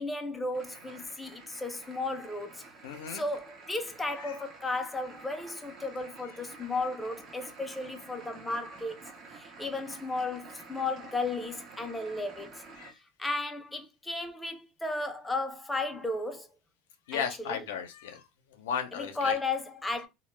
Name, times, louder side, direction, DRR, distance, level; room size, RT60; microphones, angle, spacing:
voice 1, 0.0-2.6 3.1-9.0 9.3-12.6 13.2-16.5 17.1-17.6 18.9-20.1, left 2 dB, 10° left, 0.5 m, -34 dB
sound 1, 0.5-12.9, right 4 dB, 40° right, 0.6 m, -50 dB
voice 2, 2.8-3.2 4.2-4.4 12.8-12.9 17.1-18.2 18.6-19.4, left 7 dB, 90° left, 0.5 m, -35 dB
2.1 x 2.1 x 3.1 m
supercardioid pair, 110°, 0 cm